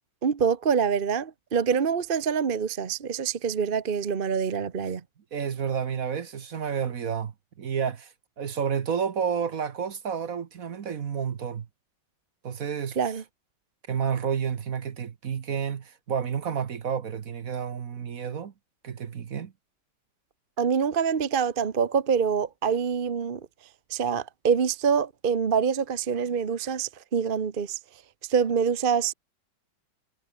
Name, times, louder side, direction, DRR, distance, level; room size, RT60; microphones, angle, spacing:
voice 1, 0.2-5.0 13.0-13.2 20.6-23.4 23.9-27.8 28.3-29.1, right 6 dB, 35° right, 1.0 m, -25 dB
voice 2, 5.3-11.7 12.4-13.0 13.9-18.5 18.8-19.5, right 7 dB, 50° right, 1.4 m, -30 dB
omnidirectional pair, 2.0 m